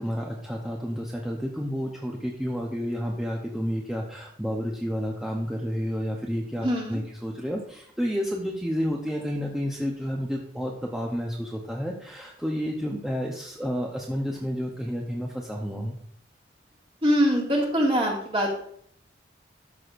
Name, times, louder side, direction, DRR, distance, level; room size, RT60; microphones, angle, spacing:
voice 1, 0.0-16.0, equal, 5° right, -2 dB, 0.7 m, -30 dB
voice 2, 6.6-7.0 17.0-18.6, equal, 30° right, -2 dB, 2.1 m, -23 dB
13.0 x 6.3 x 2.5 m, 0.65 s
head